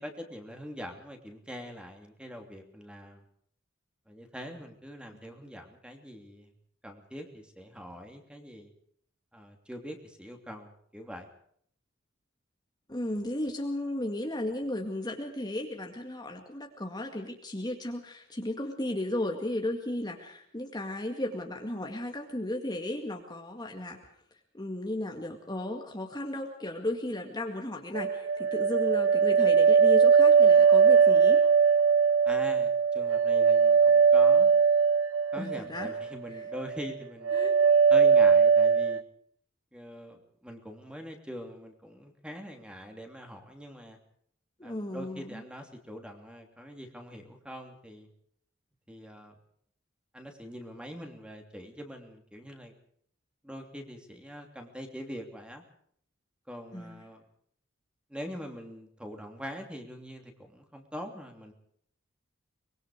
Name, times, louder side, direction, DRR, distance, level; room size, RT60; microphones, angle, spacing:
voice 1, 0.0-3.2 4.1-6.5 6.8-8.7 9.3-11.3 32.2-34.5 35.3-37.4 37.9-39.0 39.7-44.0 44.6-48.1 48.9-49.3 50.1-52.7 53.4-55.6 56.5-57.2 58.1-61.5, equal, 5° right, 4 dB, 3.0 m, -43 dB
voice 2, 12.9-24.0 24.5-31.4 35.4-35.9 36.3-36.4 37.3-37.6 44.6-45.4 56.7-57.0, left 1 dB, 20° left, 2 dB, 2.1 m, -35 dB
sound 1, 27.9-36.1 36.4-36.9 37.2-39.0, right 6 dB, 70° right, 0.8 m, -21 dB
24.5 x 22.0 x 5.0 m, 0.64 s
head